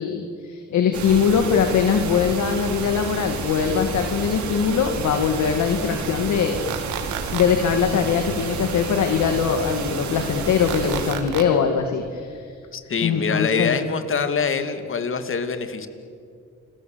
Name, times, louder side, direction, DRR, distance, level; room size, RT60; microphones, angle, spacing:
voice 1, 0.0-6.6 7.3-12.5 13.0-13.8, left 7 dB, 70° left, 6 dB, 2.3 m, -22 dB
sound 1, 0.9-11.1, right 5 dB, 70° right, 4.5 m, -30 dB
sound 2, 6.7-7.4 10.7-11.4, right 10 dB, 90° right, 2.6 m, -31 dB
voice 2, 12.7-15.9, left 5 dB, 45° left, 9 dB, 2.6 m, -24 dB
29.5 x 22.0 x 8.2 m, 2.3 s
cardioid pair, 90°, 30 cm